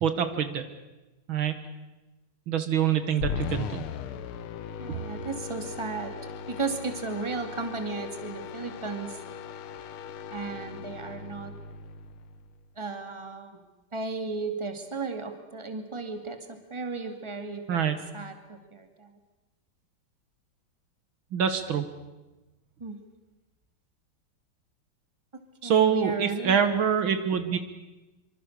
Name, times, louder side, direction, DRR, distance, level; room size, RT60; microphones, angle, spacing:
voice 1, 0.0-0.6 1.3-1.6 2.5-3.8 4.9-5.0 17.7-18.0 21.3-21.9 25.6-27.6, right 8 dB, 70° right, 9 dB, 2.2 m, -25 dB
sound 1, 3.2-12.6, left 7 dB, 90° left, 1.9 m, -38 dB
voice 2, 4.8-6.1 6.5-9.2 10.3-11.5 12.8-13.6 13.9-19.2 22.8-23.0 25.3-26.7, right 4 dB, 15° right, 6 dB, 2.2 m, -35 dB
25.0 x 25.0 x 6.6 m, 1.1 s
omnidirectional pair, 2.3 m